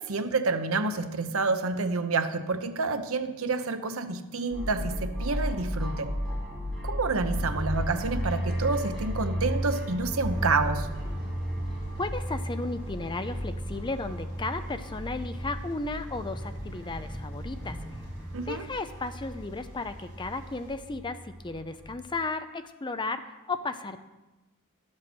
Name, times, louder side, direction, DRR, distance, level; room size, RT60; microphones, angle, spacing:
voice 1, 0.0-6.1 6.8-10.9 18.3-18.7, right 3 dB, 65° right, 0.8 m, -28 dB
sound 1, 4.5-22.0, equal, ahead, 5.2 m, -34 dB
Thunder, 9.9-20.7, equal, 30° right, 4.8 m, -45 dB
voice 2, 12.0-18.1 18.5-24.0, left 3 dB, 20° left, 0.6 m, -34 dB
12.5 x 7.5 x 6.2 m
head